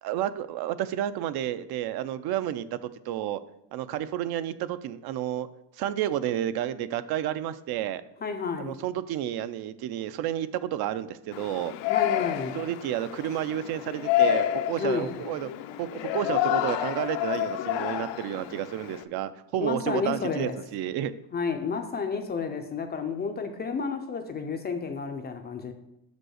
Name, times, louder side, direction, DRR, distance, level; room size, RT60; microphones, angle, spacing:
voice 1, 0.0-3.4 3.7-5.5 5.7-8.0 8.6-11.7 12.5-15.5 15.8-21.1, right 11 dB, 60° right, 14 dB, 0.5 m, -31 dB
voice 2, 8.2-8.8 11.9-12.6 14.7-15.2 19.6-20.5 21.3-25.7, left 5 dB, 25° left, 6 dB, 0.4 m, -31 dB
Yell, 11.3-19.0, left 11 dB, 85° left, 0.7 m, -29 dB
6.4 x 5.2 x 6.3 m, 0.86 s
cardioid pair, 170°, 44 cm